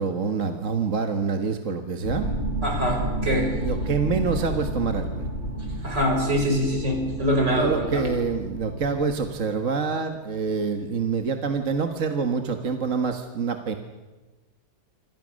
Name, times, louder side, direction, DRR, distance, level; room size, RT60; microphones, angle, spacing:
voice 1, 0.0-2.3 3.6-5.2 7.6-13.8, right 5 dB, 45° right, 6 dB, 1.7 m, -26 dB
sound 1, 2.0-9.2, right 1 dB, 40° left, 6.9 m, -31 dB
voice 2, 2.6-3.5 5.8-8.0, equal, 60° right, 3 dB, 6.0 m, -24 dB
26.5 x 26.0 x 6.5 m, 1.2 s
omnidirectional pair, 2.1 m